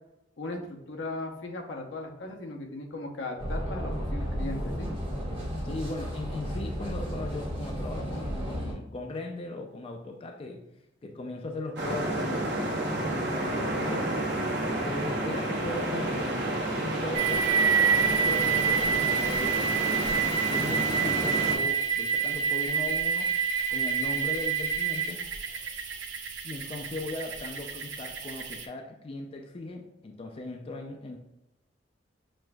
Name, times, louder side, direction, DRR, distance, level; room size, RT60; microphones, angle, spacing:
voice 1, 0.4-4.9, left 2 dB, 85° left, 2 dB, 0.7 m, -37 dB
sound 1, 3.4-8.7, equal, 25° right, 1.1 m, -33 dB
voice 2, 5.6-10.6 11.0-14.2 14.8-19.6 20.5-23.3 23.7-25.2 26.4-31.2, left 2 dB, 30° left, 3 dB, 0.3 m, -38 dB
sound 2, 11.8-21.6, right 1 dB, 60° right, 1.0 m, -30 dB
sound 3, 17.1-28.7, right 6 dB, 85° right, 0.5 m, -28 dB
6.1 x 2.5 x 2.2 m, 0.91 s
head